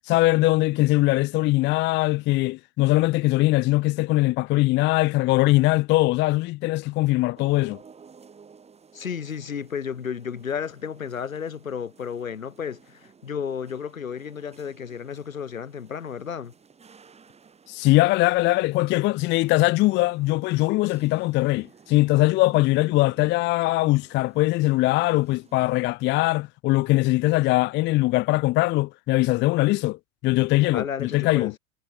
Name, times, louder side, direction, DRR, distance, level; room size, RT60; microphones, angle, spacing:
voice 1, 0.1-7.8 17.7-31.5, left 19 dB, 25° left, 0.9 m, -21 dB
sound 1, 7.3-25.9, right 6 dB, 15° right, 5.6 m, -54 dB
voice 2, 8.9-16.5 30.7-31.5, left 7 dB, 70° left, 3.0 m, -33 dB
figure-of-eight pair, 95°, 42 cm